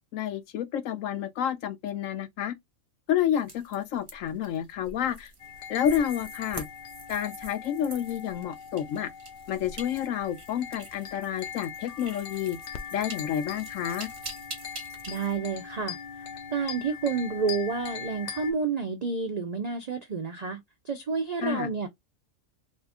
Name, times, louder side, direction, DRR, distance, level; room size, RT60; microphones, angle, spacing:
voice 1, 0.1-2.5 3.1-5.3 5.7-6.7 7.1-9.1 9.5-12.6 12.9-14.1 21.4-21.7, left 9 dB, 80° left, 1.0 m, -29 dB
sound 1, 3.4-15.4, right 3 dB, 30° right, 0.8 m, -46 dB
sound 2, 5.4-18.5, left 7 dB, 65° left, 0.5 m, -41 dB
voice 2, 15.1-16.2 16.5-21.9, right 5 dB, 65° right, 0.4 m, -30 dB
2.8 x 2.4 x 3.4 m
omnidirectional pair, 1.4 m